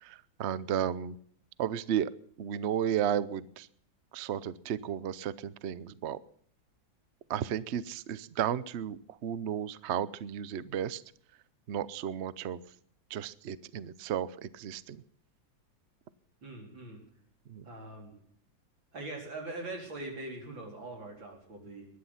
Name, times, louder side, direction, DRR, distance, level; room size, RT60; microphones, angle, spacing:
voice 1, 0.0-1.1 1.6-2.1 2.4-3.7 4.1-6.2 7.3-11.0 11.7-12.6 13.1-15.0 17.5-17.6, right 9 dB, 90° right, 17 dB, 0.5 m, -33 dB
voice 2, 16.4-17.0 17.6-18.1 18.9-21.9, right 2 dB, 70° right, 1 dB, 4.8 m, -42 dB
21.0 x 11.5 x 5.7 m, 0.63 s
omnidirectional pair, 2.2 m